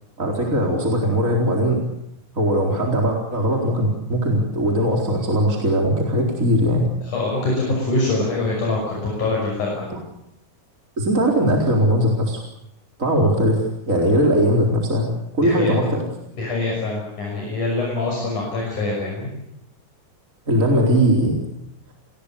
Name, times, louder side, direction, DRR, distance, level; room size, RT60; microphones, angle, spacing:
voice 1, 0.2-1.8 2.4-6.9 9.9-10.0 11.0-12.4 13.0-15.1 15.3-16.0 20.5-21.4, equal, 20° right, 0 dB, 4.4 m, -19 dB
voice 2, 7.0-9.9 15.4-15.8 16.3-19.3, left 2 dB, 60° left, -2 dB, 7.6 m, -24 dB
29.0 x 21.0 x 7.1 m, 0.77 s
omnidirectional pair, 3.9 m